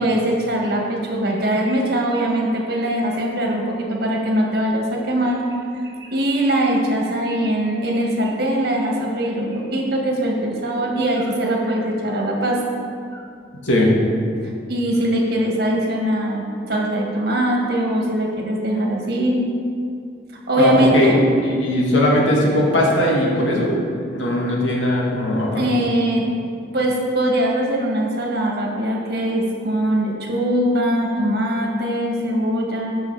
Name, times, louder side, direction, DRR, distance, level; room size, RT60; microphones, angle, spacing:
voice 1, 0.0-12.6 13.1-13.2 14.7-19.4 20.5-21.2 25.5-26.2 26.7-32.9, right 1 dB, 55° right, -1 dB, 1.7 m, -21 dB
voice 2, 20.6-21.2 21.6-23.8 24.1-25.7, left 1 dB, 90° left, -2 dB, 2.1 m, -18 dB
13.5 x 5.7 x 4.8 m, 2.4 s
head